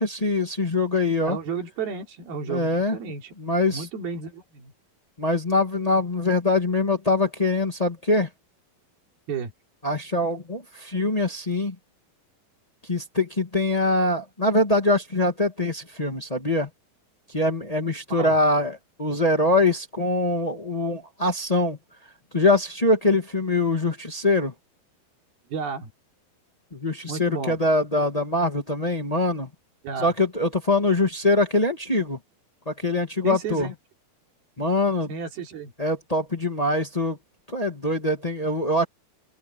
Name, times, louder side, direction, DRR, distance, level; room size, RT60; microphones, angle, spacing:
voice 1, 0.0-1.4 2.5-3.0 3.4-3.9 5.2-8.3 9.8-11.7 12.9-16.7 17.3-21.8 22.3-24.5 26.7-29.5 30.0-32.2 32.7-33.7 34.6-35.1 35.8-37.2 37.5-38.8, left 2 dB, 35° left, 0.6 m, -23 dB
voice 2, 1.3-3.3 3.7-4.7 9.3-9.5 18.1-18.4 25.5-25.9 27.1-27.6 29.8-30.1 33.2-33.7 35.1-35.7, right 5 dB, 85° right, 5.5 m, -32 dB
open air
omnidirectional pair, 4.2 m